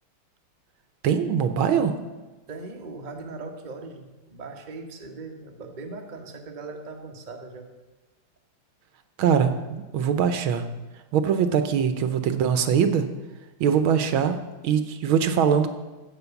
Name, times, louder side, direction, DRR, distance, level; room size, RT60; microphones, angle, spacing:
voice 1, 1.0-1.9 9.2-10.6 11.1-13.0 13.6-15.7, right 7 dB, 75° right, 9 dB, 1.5 m, -22 dB
voice 2, 2.5-7.7, right 3 dB, 30° right, 2 dB, 0.8 m, -39 dB
15.0 x 5.2 x 7.0 m, 1.2 s
omnidirectional pair, 2.3 m